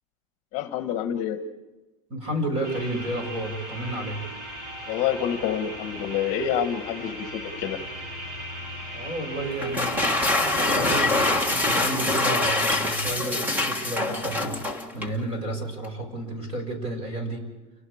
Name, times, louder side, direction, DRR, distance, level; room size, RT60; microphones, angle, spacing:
voice 1, 0.5-1.4 4.9-7.8, left 9 dB, 35° left, 8 dB, 1.3 m, -27 dB
voice 2, 2.1-4.2 8.9-10.2 10.7-17.5, right 1 dB, 30° right, 4 dB, 6.5 m, -31 dB
sound 1, 2.6-11.8, equal, 50° right, 6.2 m, -38 dB
sound 2, 9.6-15.2, left 2 dB, 10° right, 1.6 m, -24 dB
30.0 x 19.0 x 5.0 m, 1.1 s
supercardioid pair, 165°, 20 cm